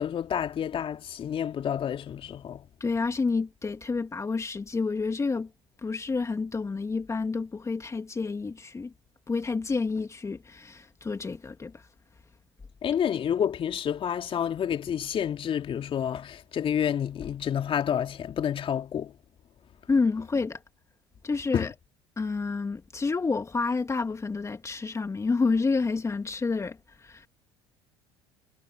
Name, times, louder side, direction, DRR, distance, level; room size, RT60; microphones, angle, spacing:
voice 1, 0.0-2.7 12.8-19.1 21.5-21.7, left 9 dB, 40° left, 2.6 m, -29 dB
voice 2, 2.8-5.5 5.8-8.9 9.3-11.7 19.9-20.6 21.2-21.7 22.2-27.3, left 4 dB, 20° left, 2.2 m, -29 dB
figure-of-eight pair, 60°, 13 cm